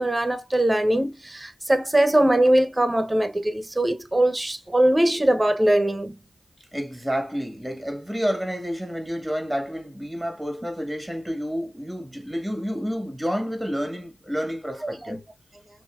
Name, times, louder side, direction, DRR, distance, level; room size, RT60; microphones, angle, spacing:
voice 1, 0.0-6.2 14.8-15.2, right 1 dB, 20° right, 1.3 m, -21 dB
voice 2, 6.7-15.2, equal, 5° right, 1.9 m, -29 dB
6.0 x 3.0 x 2.5 m
cardioid pair, 50°, 0 cm